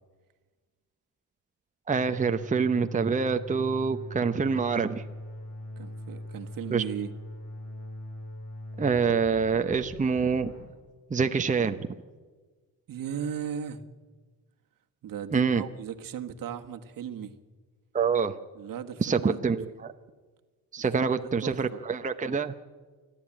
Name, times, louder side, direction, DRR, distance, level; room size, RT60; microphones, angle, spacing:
sound 1, 1.9-10.7, left 1 dB, 65° left, 6.9 m, -41 dB
voice 1, 1.9-5.0 6.7-6.8 8.8-10.5 11.1-11.9 15.3-15.6 17.9-18.4 19.0-19.9 20.7-22.5, right 5 dB, 20° right, 7 dB, 0.9 m, -26 dB
voice 2, 5.8-7.1 12.9-13.8 15.0-17.3 18.6-19.4 20.8-21.1 21.4-21.8, right 8 dB, 60° right, 6 dB, 1.6 m, -36 dB
27.5 x 11.5 x 8.9 m, 1.4 s
cardioid pair, 85°, 37 cm